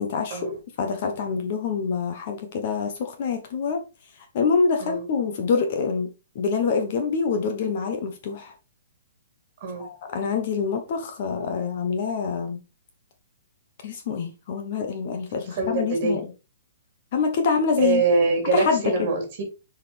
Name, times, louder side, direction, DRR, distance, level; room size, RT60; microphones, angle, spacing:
voice 1, 0.0-3.8 4.3-6.1 6.3-8.5 9.8-12.6 13.8-16.3 17.1-18.0 18.5-19.1, left 5 dB, 35° left, 1.0 m, -26 dB
voice 2, 15.6-16.2 17.8-19.4, right 3 dB, 30° right, 3.0 m, -24 dB
6.8 x 5.0 x 3.5 m
hypercardioid pair, 180°, 0 cm